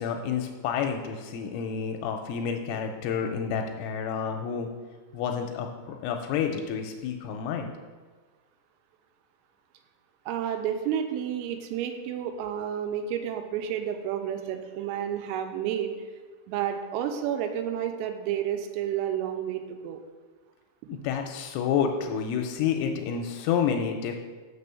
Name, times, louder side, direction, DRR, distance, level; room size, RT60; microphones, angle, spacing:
voice 1, 0.0-4.7 5.1-7.7 20.9-24.1, left 7 dB, 85° left, 4 dB, 2.9 m, -29 dB
voice 2, 10.3-15.9 16.5-20.0 20.9-21.1, right 9 dB, 85° right, 6 dB, 3.4 m, -31 dB
6.8 x 6.8 x 6.8 m, 1.4 s
omnidirectional pair, 5.9 m